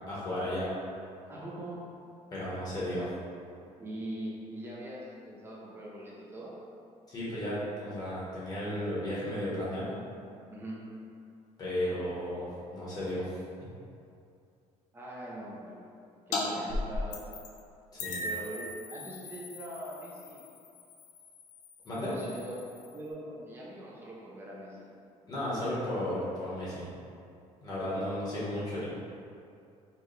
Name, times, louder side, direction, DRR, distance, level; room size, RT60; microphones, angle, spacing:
voice 1, 0.1-0.7 2.3-3.1 7.1-10.0 11.6-13.4 17.9-18.2 21.8-22.2 25.3-26.9 27.6-28.8, left 1 dB, 30° left, -9 dB, 1.2 m, -34 dB
voice 2, 1.3-1.8 3.8-6.5 10.5-10.8 14.9-15.8 16.3-17.4 18.2-20.4 22.1-22.6 22.9-24.9, right 1 dB, 20° right, -5 dB, 0.7 m, -42 dB
sound 1, 16.3-16.4 16.7-17.6 18.0-23.1, left 2 dB, 75° left, 0.6 m, -38 dB
4.6 x 2.4 x 3.2 m, 2.5 s
cardioid pair, 160°, 13 cm